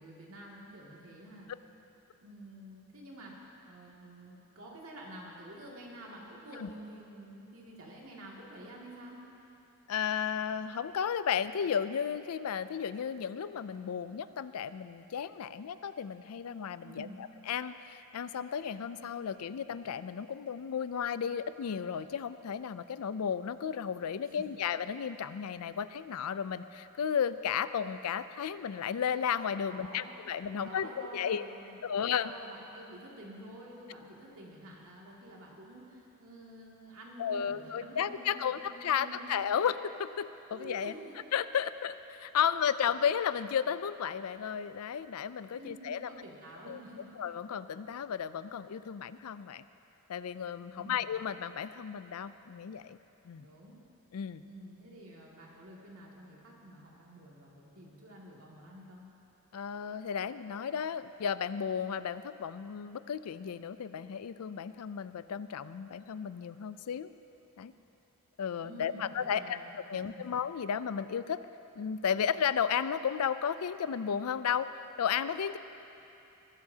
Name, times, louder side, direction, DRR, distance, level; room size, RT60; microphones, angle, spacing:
voice 1, 0.0-1.5 2.2-9.2 16.8-17.2 24.2-24.4 29.7-39.3 40.5-41.1 45.5-47.1 50.7-51.1 53.4-53.8 54.4-59.0 68.6-69.6 69.9-70.0, right 1 dB, 75° right, -3 dB, 2.3 m, -49 dB
voice 2, 9.9-31.5 31.8-32.3 37.2-40.9 41.3-46.1 46.7-46.8 47.2-49.7 50.1-53.0 53.2-53.5 54.1-54.4 59.5-67.1 67.6-67.7 68.4-71.4 71.8-74.7 75.0-75.6, left 7 dB, 85° left, 14 dB, 0.4 m, -33 dB
21.5 x 12.5 x 2.8 m, 2.9 s
head